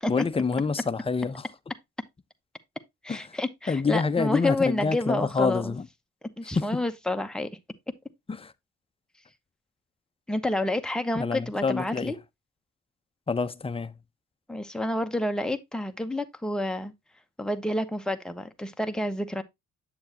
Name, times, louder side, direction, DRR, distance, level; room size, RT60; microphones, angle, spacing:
voice 1, 0.1-1.5 3.1-3.4 3.7-5.9 6.6-6.8 8.3-8.5 11.1-12.1 13.3-13.9, left 4 dB, 20° left, 0.6 m, -27 dB
voice 2, 3.0-5.8 6.4-7.5 10.3-12.2 14.5-16.9 17.4-19.4, left 1 dB, ahead, 0.9 m, -29 dB
7.8 x 7.0 x 2.8 m
cardioid pair, 90°, 30 cm